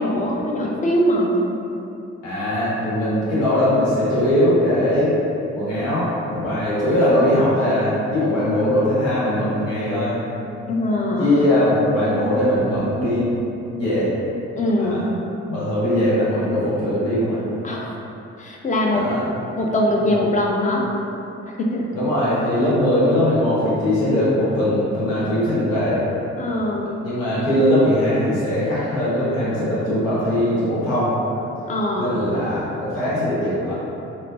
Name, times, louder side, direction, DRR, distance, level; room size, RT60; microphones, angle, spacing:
voice 1, 0.0-1.4 10.7-11.3 14.5-15.1 17.6-18.0 18.4-19.1 19.5-20.8 21.4-21.9 26.4-26.9 31.7-32.2, left 1 dB, 20° left, -1 dB, 0.5 m, -22 dB
voice 2, 2.2-5.1 5.5-10.2 11.1-13.3 13.8-14.1 14.8-15.0 15.5-17.4 18.9-19.3 21.9-26.0 27.0-31.1 31.9-33.8, left 1 dB, 85° left, -9 dB, 0.9 m, -20 dB
4.2 x 2.0 x 2.5 m, 2.8 s
hypercardioid pair, 50°, 37 cm